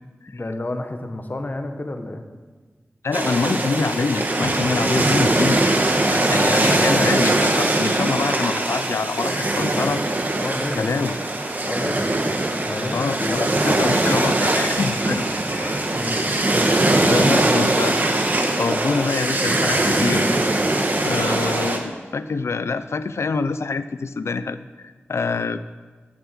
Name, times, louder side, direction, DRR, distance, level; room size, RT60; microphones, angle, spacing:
voice 1, 0.3-2.2 10.3-11.1 11.6-12.1 12.6-13.6 15.9-16.2 17.0-17.5, left 2 dB, 35° left, 6 dB, 1.1 m, -30 dB
voice 2, 3.0-10.0 10.7-11.2 12.9-15.8 17.1-18.0 18.5-20.3 21.0-25.7, left 4 dB, 70° left, 13 dB, 0.5 m, -25 dB
sound 1, 3.1-21.8, right 2 dB, 40° right, 1.3 m, -21 dB
10.5 x 7.1 x 7.6 m, 1.4 s
wide cardioid pair, 90°, 5 cm